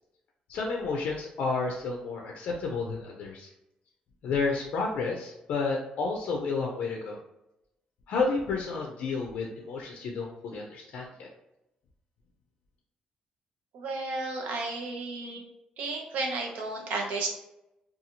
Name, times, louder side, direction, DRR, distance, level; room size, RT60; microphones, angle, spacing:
voice 1, 0.5-3.5 4.2-7.2 8.1-11.3, left 4 dB, 65° left, 1 dB, 0.4 m, -31 dB
voice 2, 13.7-15.4 15.8-17.3, right 3 dB, 85° right, 1 dB, 0.6 m, -33 dB
2.7 x 2.3 x 2.8 m, 0.89 s
cardioid pair, 170°, 3 cm